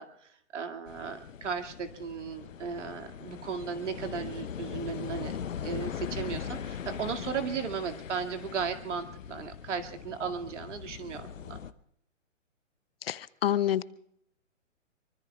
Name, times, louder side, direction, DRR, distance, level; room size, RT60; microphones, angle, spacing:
voice 1, 0.0-11.6, right 6 dB, 65° right, 6 dB, 2.3 m, -36 dB
sound 1, 0.9-11.7, left 8 dB, 85° left, 0.9 m, -40 dB
voice 2, 13.0-13.8, left 11 dB, 50° left, 18 dB, 0.6 m, -28 dB
24.5 x 24.0 x 2.4 m, 0.69 s
hypercardioid pair, 145°, 38 cm